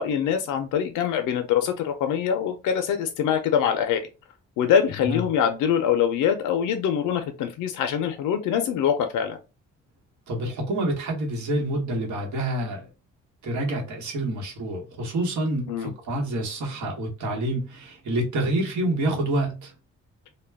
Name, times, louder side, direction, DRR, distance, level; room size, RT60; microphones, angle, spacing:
voice 1, 0.0-4.1 4.6-9.4 15.7-15.9, left 8 dB, 85° left, 0.5 m, -24 dB
voice 2, 10.3-12.9 13.4-19.7, right 1 dB, 70° right, 1.1 m, -27 dB
2.2 x 2.1 x 3.3 m
cardioid pair, 90°, 30 cm